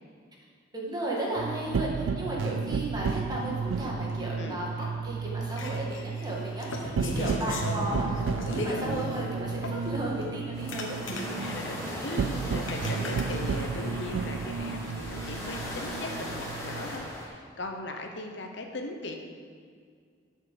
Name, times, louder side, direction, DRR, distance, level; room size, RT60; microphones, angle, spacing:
voice 1, 0.7-11.3, right 1 dB, 20° right, -4 dB, 1.9 m, -34 dB
sound 1, 1.4-17.1, right 5 dB, 85° right, 0.4 m, -33 dB
sound 2, 5.5-9.4 9.6-11.6 12.1-12.2 12.7-13.2, left 1 dB, 85° left, 1.2 m, -36 dB
sound 3, 10.5-17.3, left 1 dB, 15° left, 1.8 m, -38 dB
voice 2, 11.3-19.2, left 2 dB, 65° left, 3 dB, 0.9 m, -39 dB
11.5 x 6.5 x 5.0 m, 2.1 s
head